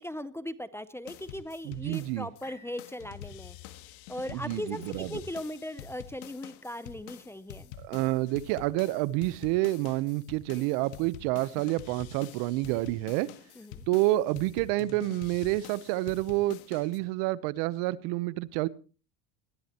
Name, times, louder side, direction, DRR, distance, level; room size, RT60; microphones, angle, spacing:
voice 1, 0.0-3.6 4.1-7.7 13.6-13.8, left 1 dB, 5° left, 15 dB, 0.6 m, -38 dB
sound 1, 1.1-2.5 2.8-17.0, left 10 dB, 85° left, 1.6 m, -47 dB
voice 2, 1.6-2.3 4.3-5.1 7.8-13.3 13.9-18.7, right 18 dB, 70° right, 19 dB, 0.9 m, -28 dB
sound 2, 2.4-6.4 6.9-7.0, left 3 dB, 50° left, 6.7 m, -60 dB
21.0 x 14.0 x 3.0 m, 0.36 s
supercardioid pair, 120°, 43 cm